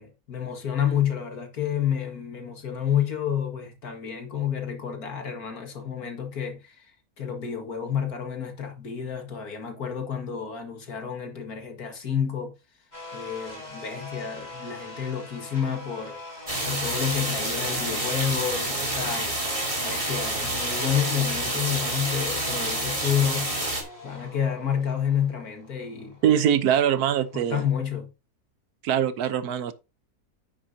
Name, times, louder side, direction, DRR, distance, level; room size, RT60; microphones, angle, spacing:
voice 1, 0.0-6.9 7.2-12.5 13.1-16.2 16.6-19.4 19.8-26.3 27.3-28.1, left 8 dB, 75° left, 2.3 m, -29 dB
sound 1, 12.9-27.8, left 2 dB, 25° left, 3.4 m, -43 dB
sound 2, 16.5-23.8, right 1 dB, 20° right, 2.6 m, -28 dB
voice 2, 26.2-27.6 28.8-29.7, right 9 dB, 80° right, 1.3 m, -22 dB
9.6 x 8.7 x 2.8 m
omnidirectional pair, 1.6 m